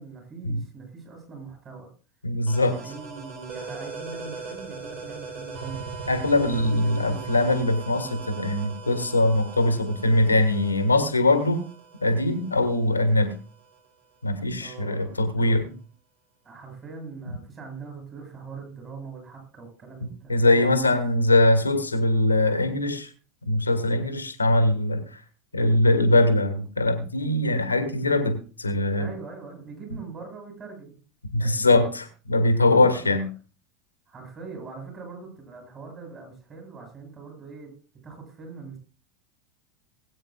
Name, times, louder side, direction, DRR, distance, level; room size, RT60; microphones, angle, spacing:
voice 1, 0.0-1.9 2.8-5.9 6.2-7.5 14.6-15.8 16.4-20.8 29.0-31.0 31.3-31.8 32.7-33.1 34.1-37.7 38.0-38.8, right 4 dB, 30° right, 2 dB, 7.4 m, -42 dB
voice 2, 2.2-2.8 6.1-11.6 12.0-13.3 14.2-15.6 20.3-23.1 23.4-25.0 25.5-29.1 31.3-33.3, left 2 dB, 85° left, 7 dB, 1.7 m, -22 dB
sound 1, 2.5-13.9, right 4 dB, 60° right, 6.3 m, -39 dB
20.5 x 9.0 x 2.4 m, 0.36 s
figure-of-eight pair, 80°, 0 cm